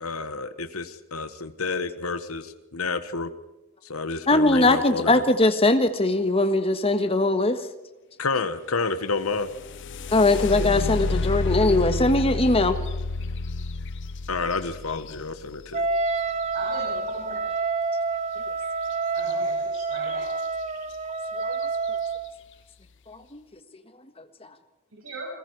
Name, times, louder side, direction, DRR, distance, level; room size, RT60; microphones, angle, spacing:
voice 1, 0.0-3.3 3.8-5.2 8.2-9.5 14.3-15.9, left 4 dB, 85° left, 10 dB, 1.3 m, -29 dB
voice 2, 4.3-7.6 10.1-12.8 21.4-21.7 23.1-23.4, left 2 dB, 25° left, 8 dB, 1.5 m, -21 dB
sound 1, 9.3-17.1 19.2-19.3 19.7-20.3 20.9-21.0 21.5-21.9, left 3 dB, 60° left, 0.6 m, -30 dB
Wind instrument woodwind instrument, 15.7-22.4, right 4 dB, 30° right, 0.7 m, -28 dB
voice 3, 16.5-17.3 19.1-20.3 25.0-25.3, right 1 dB, 75° right, -4 dB, 7.0 m, -37 dB
28.5 x 21.5 x 4.8 m, 1.0 s
head